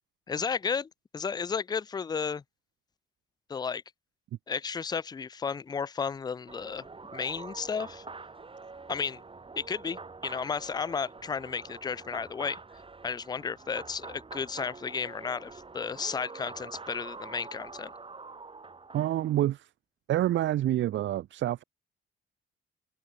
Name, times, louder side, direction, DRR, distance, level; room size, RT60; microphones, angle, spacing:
voice 1, 0.3-2.4 3.5-3.8 4.5-6.9 7.1-8.0 8.9-9.2 9.6-12.6 13.0-17.9, left 6 dB, 20° left, 0.4 m, -33 dB
sound 1, 6.5-19.4, right 4 dB, 25° right, 5.2 m, -46 dB
voice 2, 18.9-19.7 20.1-21.6, right 13 dB, 70° right, 0.9 m, -27 dB
open air
cardioid pair, 90°, 20 cm